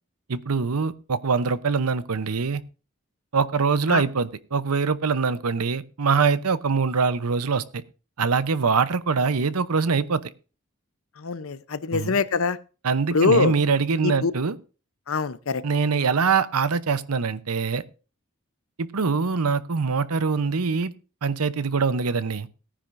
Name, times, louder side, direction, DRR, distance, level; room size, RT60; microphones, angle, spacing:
voice 1, 0.3-2.6 3.3-7.8 8.2-10.2 11.9-12.2 12.8-14.6 15.6-17.8 18.8-20.9 21.2-22.5, right 5 dB, 90° right, 15 dB, 0.8 m, -23 dB
voice 2, 11.2-12.6 13.1-13.5 14.0-14.3 15.1-15.6, left 4 dB, 70° left, 15 dB, 0.7 m, -23 dB
17.5 x 10.0 x 2.6 m, 0.34 s
head